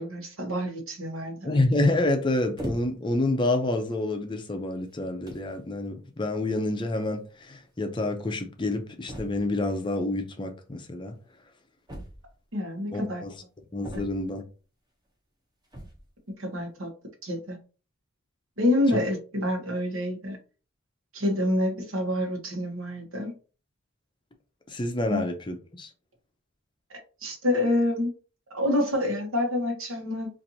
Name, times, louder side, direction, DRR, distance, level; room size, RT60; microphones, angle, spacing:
voice 1, 0.0-1.6 12.5-13.2 13.9-14.0 16.4-16.9 17.2-17.6 18.6-20.4 21.1-23.3 25.1-25.2 27.2-28.1 28.5-30.3, left 1 dB, 75° right, 1.1 m, -27 dB
voice 2, 1.4-11.1 12.9-13.3 13.7-14.4 24.7-25.9, left 2 dB, 20° left, 0.5 m, -28 dB
sound 1, 2.6-3.2 3.9-4.1 4.9-5.0 5.3-5.6 6.8-6.9 7.1-7.2 7.4-7.5 9.1-9.6 11.9-12.5 13.8-14.5 15.6-16.1, equal, 20° right, 0.7 m, -39 dB
4.3 x 2.6 x 2.7 m
head